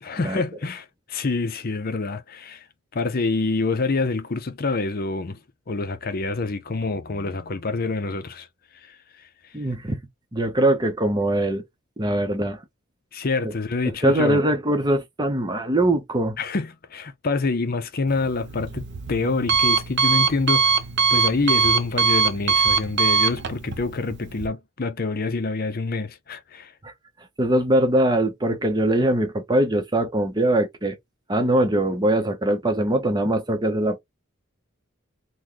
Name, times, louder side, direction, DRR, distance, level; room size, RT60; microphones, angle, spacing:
voice 1, 0.0-2.6 2.9-5.4 5.7-8.5 8.9-9.0 13.1-14.4 16.4-20.8 21.1-26.7, left 3 dB, 45° left, 0.6 m, -26 dB
voice 2, 9.5-10.0 10.3-11.6 12.0-12.6 13.4-13.5 14.0-16.4 26.8-26.9 27.4-31.0 31.3-34.0, right 1 dB, 20° right, 0.8 m, -22 dB
Alarm, 18.1-24.5, right 5 dB, 55° right, 0.6 m, -22 dB
3.1 x 2.2 x 3.7 m
head